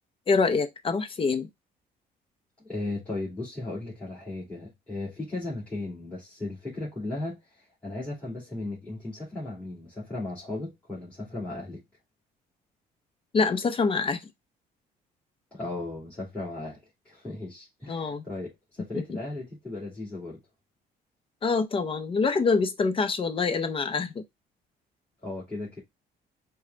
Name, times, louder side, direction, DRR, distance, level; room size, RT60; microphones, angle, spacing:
voice 1, 0.3-1.5 13.3-14.2 17.9-18.2 18.9-19.0 21.4-24.2, left 4 dB, 30° left, 0.7 m, -25 dB
voice 2, 2.6-11.8 15.5-20.4 25.2-25.8, left 2 dB, 5° left, 2.4 m, -36 dB
4.7 x 2.3 x 3.7 m
cardioid pair, 110°, 17 cm